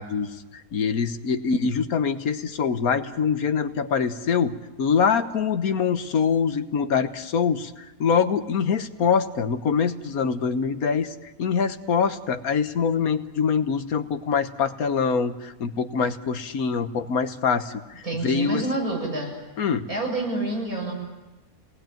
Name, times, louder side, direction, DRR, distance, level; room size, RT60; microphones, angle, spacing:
voice 1, 0.0-18.7 19.6-19.9, left 6 dB, 85° left, 9 dB, 1.6 m, -24 dB
voice 2, 18.0-19.4 19.9-20.9, right 2 dB, 85° right, -1 dB, 8.0 m, -28 dB
28.0 x 19.5 x 9.1 m, 1.1 s
omnidirectional pair, 1.5 m